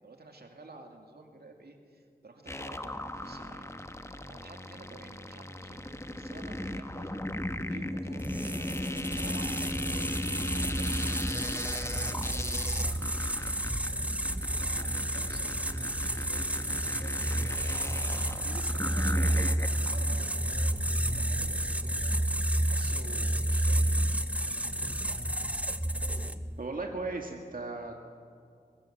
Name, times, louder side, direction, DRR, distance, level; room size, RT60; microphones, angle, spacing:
voice 1, 0.0-3.7 4.3-5.8 6.1-14.3 14.6-22.2 22.7-25.4, right 2 dB, 80° right, 3 dB, 2.6 m, -52 dB
sound 1, 2.5-19.9, left 1 dB, 15° left, 1.1 m, -37 dB
sound 2, 8.2-26.5, right 1 dB, 10° right, 1.0 m, -30 dB
voice 2, 26.6-28.0, right 3 dB, 60° right, 2 dB, 2.0 m, -36 dB
23.5 x 20.0 x 7.6 m, 2.3 s
wide cardioid pair, 60°, 16 cm